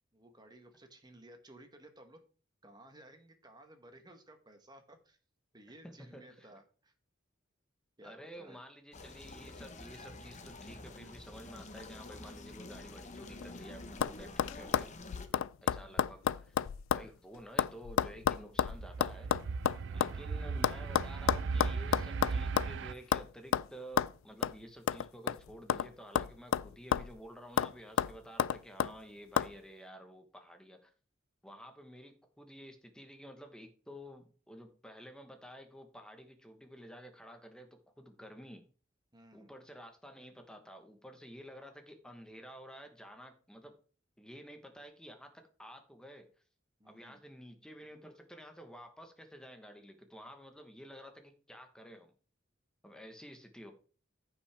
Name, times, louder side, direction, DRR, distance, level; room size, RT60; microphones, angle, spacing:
voice 1, 0.1-2.2 2.6-5.2 5.5-6.9 8.0-8.6 15.7-16.2 19.9-20.3 39.1-39.5 46.8-47.2, right 1 dB, 20° right, 6 dB, 1.1 m, -57 dB
voice 2, 5.8-6.5 8.0-14.9 15.3-16.6 16.9-19.3 19.9-30.9 31.4-37.7 38.0-38.6 39.3-43.7 44.2-46.3 46.8-52.1 52.8-53.7, equal, 5° left, 5 dB, 1.1 m, -51 dB
sound 1, 8.9-15.3, left 2 dB, 35° left, 1.0 m, -48 dB
sound 2, 13.2-13.6 14.0-14.1 14.4-17.1 17.3-20.2 20.6-22.8 23.1-23.3 23.5-23.7 24.0-24.1 24.4-24.6 24.9-25.9 26.2-27.2 27.6-27.7 28.0-28.9 29.4-29.5, left 8 dB, 85° left, 0.3 m, -31 dB
sound 3, 18.6-22.9, right 4 dB, 65° right, 0.4 m, -37 dB
14.5 x 5.7 x 3.4 m, 0.39 s
head